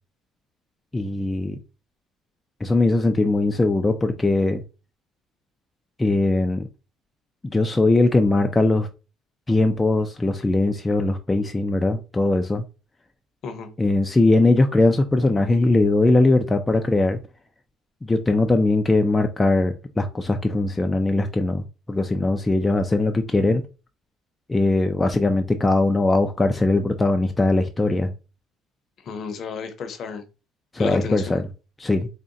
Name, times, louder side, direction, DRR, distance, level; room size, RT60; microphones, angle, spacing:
voice 1, 0.9-1.6 2.6-4.6 6.0-6.7 7.4-8.9 9.5-12.6 13.8-17.2 18.0-23.6 24.5-28.1 30.7-31.4 31.8-32.1, left 2 dB, 10° left, 0.3 m, -20 dB
voice 2, 29.0-30.2 30.8-31.4, left 5 dB, 45° left, 0.6 m, -32 dB
3.6 x 2.1 x 3.9 m
cardioid pair, 145°, 0 cm